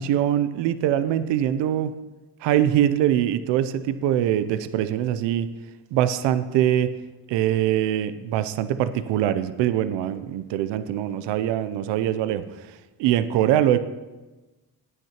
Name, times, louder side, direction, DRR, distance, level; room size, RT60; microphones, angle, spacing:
voice 1, 0.0-2.0 2.4-5.5 5.9-7.0 7.3-12.7 13.0-13.8, right 11 dB, 80° right, 13 dB, 0.6 m, -23 dB
15.0 x 9.0 x 3.0 m, 1.1 s
supercardioid pair, 70°, 42 cm